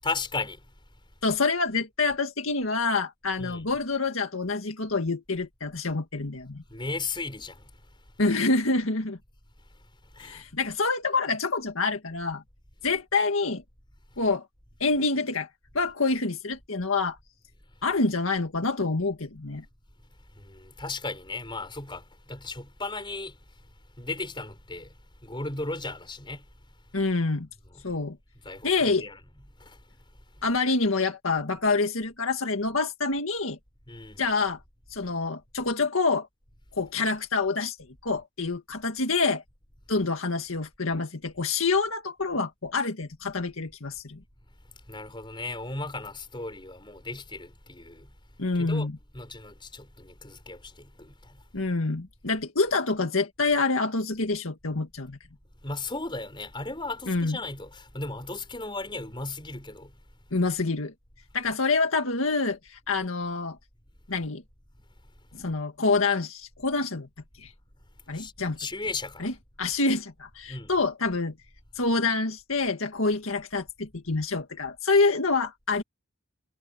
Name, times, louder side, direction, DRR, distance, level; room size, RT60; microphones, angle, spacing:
voice 1, 0.0-0.7 3.4-3.7 6.7-7.7 10.1-10.4 20.3-23.4 24.0-26.5 27.7-27.8 28.4-29.2 29.6-29.8 33.9-34.2 44.9-48.1 48.6-51.4 55.6-59.9 68.1-68.3 68.6-69.3 70.5-70.7, left 3 dB, 25° left, 5.6 m, -36 dB
voice 2, 1.2-6.6 8.2-9.2 10.2-12.4 12.8-13.6 14.2-14.5 14.8-15.5 15.7-17.2 17.8-19.6 26.9-27.5 27.8-28.2 28.6-29.1 30.4-33.6 34.2-34.6 34.9-36.3 36.7-37.8 38.0-39.4 39.9-44.2 48.4-49.0 51.5-55.2 57.1-57.4 60.3-60.9 61.3-63.6 64.1-64.4 65.3-67.1 67.4-67.5 68.1-68.6 69.2-69.3 69.6-71.3 71.8-75.8, left 3 dB, 85° left, 1.8 m, -27 dB
head